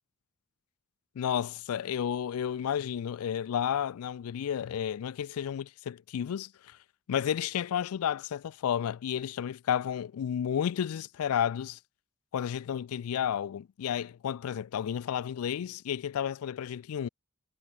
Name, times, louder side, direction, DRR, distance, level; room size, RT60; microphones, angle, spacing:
voice 1, 1.2-6.8 7.1-11.8 12.3-17.1, left 9 dB, 90° left, 0.3 m, -32 dB
head